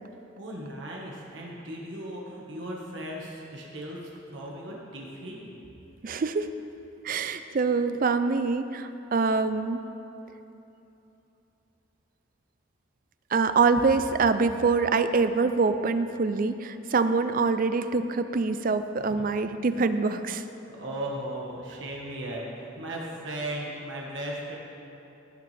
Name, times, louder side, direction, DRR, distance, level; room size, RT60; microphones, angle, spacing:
voice 1, 0.4-5.6 19.2-19.3 20.7-24.5, right 1 dB, 65° right, -3 dB, 1.5 m, -37 dB
voice 2, 6.0-6.5 7.0-9.8 13.3-20.4, right 4 dB, 45° right, 10 dB, 0.4 m, -25 dB
17.5 x 6.9 x 3.4 m, 2.9 s
head